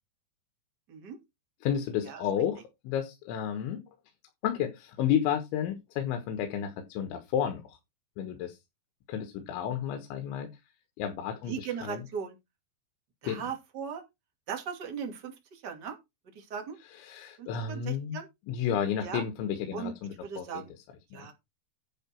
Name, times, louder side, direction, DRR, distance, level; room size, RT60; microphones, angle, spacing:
voice 1, 1.6-3.8 4.4-7.8 8.2-8.6 9.1-10.5 11.0-12.0 13.2-13.4 17.0-18.2 18.5-20.5 21.1-21.3, left 9 dB, 90° left, 3.7 m, -31 dB
voice 2, 11.5-12.4 13.2-14.0 14.5-16.0 16.3-16.8 17.4-18.3 19.0-19.2 19.7-19.9 20.2-20.7 21.1-21.3, right 7 dB, 30° right, 2.1 m, -38 dB
11.0 x 6.4 x 4.5 m
omnidirectional pair, 5.2 m